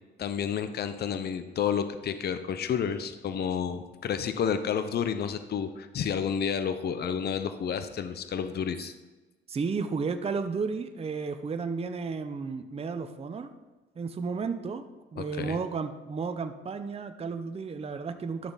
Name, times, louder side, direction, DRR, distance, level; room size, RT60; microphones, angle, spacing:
voice 1, 0.2-8.9 15.2-15.6, left 7 dB, 55° left, 10 dB, 0.7 m, -30 dB
voice 2, 9.5-13.5 14.0-14.8 15.1-18.5, right 5 dB, 30° right, 8 dB, 0.7 m, -33 dB
11.0 x 6.8 x 4.1 m, 1.2 s
cardioid pair, 90°, 20 cm